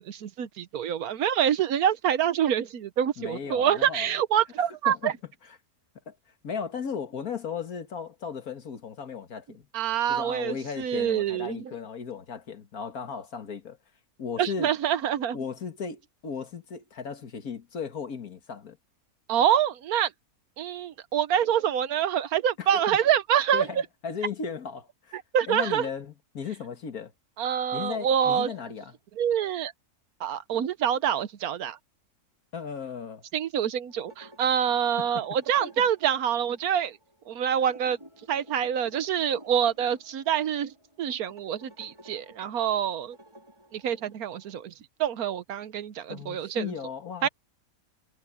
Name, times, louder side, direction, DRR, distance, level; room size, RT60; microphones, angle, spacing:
voice 1, 0.0-5.1 9.7-11.7 14.4-15.4 19.3-20.1 20.6-23.7 25.1-25.9 27.4-28.5 29.2-29.7 30.2-31.8 33.3-37.0 37.3-38.0 38.3-43.2 43.7-44.7 45.0-46.7 47.2-47.3, right 9 dB, 75° right, 1.3 m, -26 dB
voice 2, 3.2-4.1 4.9-5.1 6.1-6.2 6.4-9.7 10.1-13.8 14.2-14.7 15.3-18.8 22.6-23.0 23.5-25.2 25.5-27.1 27.7-29.0 32.5-33.2 35.0-35.3 35.6-35.7 46.1-47.3, left 6 dB, 70° left, 2.1 m, -36 dB
sound 1, 33.9-44.6, equal, 15° right, 5.4 m, -54 dB
omnidirectional pair, 1.6 m